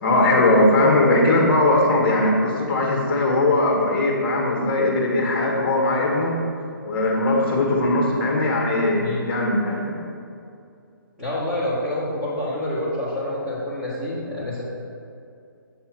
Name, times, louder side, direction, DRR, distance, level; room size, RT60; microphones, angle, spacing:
voice 1, 0.0-6.4 6.8-10.0, left 2 dB, 30° left, -1 dB, 1.3 m, -20 dB
voice 2, 8.9-9.3 11.2-14.6, left 1 dB, 5° right, -12 dB, 1.8 m, -27 dB
7.7 x 3.4 x 5.9 m, 2.5 s
hypercardioid pair, 170°, 12 cm